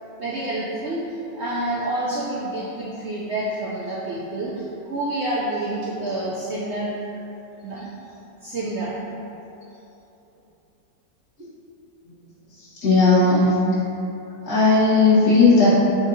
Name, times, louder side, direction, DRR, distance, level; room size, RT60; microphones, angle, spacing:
voice 1, 0.2-6.9 7.6-7.9 8.4-8.9, right 1 dB, 65° right, -7 dB, 0.6 m, -28 dB
voice 2, 12.8-13.5 14.5-15.7, left 3 dB, 70° left, -10 dB, 1.9 m, -15 dB
7.1 x 2.7 x 2.6 m, 2.9 s
omnidirectional pair, 1.7 m